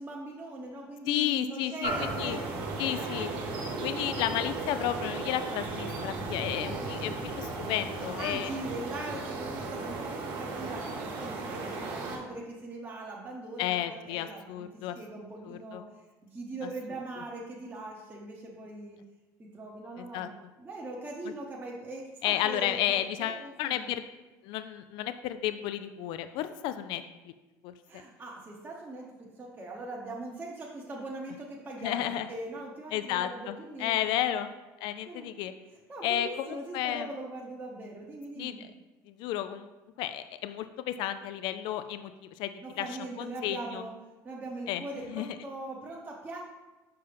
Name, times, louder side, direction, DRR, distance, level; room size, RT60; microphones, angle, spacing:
voice 1, 0.0-2.4 2.8-3.4 4.0-4.4 6.5-7.3 8.2-15.8 16.3-19.0 19.4-23.9 27.9-34.4 35.1-35.3 35.7-38.7 42.6-43.9 44.2-46.4, right 2 dB, 20° right, -3 dB, 1.0 m, -41 dB
voice 2, 1.1-2.4 2.8-3.3 3.8-8.5 13.6-15.0 15.5-15.8 20.1-20.3 22.2-24.0 24.4-27.3 27.6-27.7 31.8-32.3 32.9-33.5 33.8-34.5 34.8-35.5 36.0-37.1 38.4-38.5 39.1-39.7 40.0-42.9 43.2-43.8 44.7-44.8 45.1-45.3, left 12 dB, 70° left, 11 dB, 0.4 m, -32 dB
sound 1, 1.8-12.2, right 3 dB, 65° right, 1.5 m, -35 dB
6.6 x 5.4 x 3.4 m, 1.1 s
cardioid pair, 120°, 9 cm